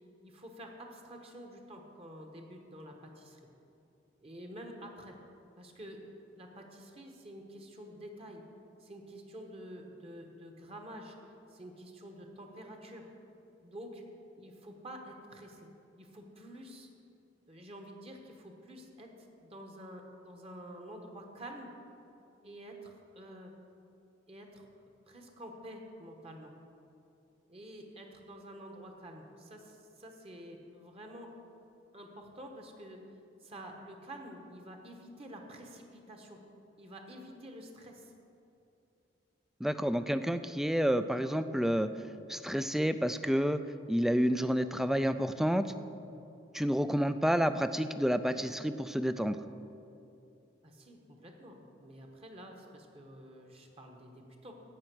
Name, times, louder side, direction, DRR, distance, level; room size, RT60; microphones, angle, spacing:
voice 1, 0.2-3.4 4.2-5.2 5.6-8.4 8.8-11.1 11.5-13.1 13.6-14.0 14.4-15.7 16.0-16.9 17.5-19.1 19.4-21.8 22.4-23.5 24.3-24.7 25.1-26.5 27.5-31.3 31.9-33.0 33.4-36.4 36.8-38.1 50.6-54.5, equal, 30° right, 2 dB, 1.3 m, -48 dB
voice 2, 39.6-41.9 42.3-43.6 43.9-45.7 46.5-49.4, equal, ahead, 11 dB, 0.3 m, -29 dB
16.0 x 5.7 x 6.2 m, 2.7 s
head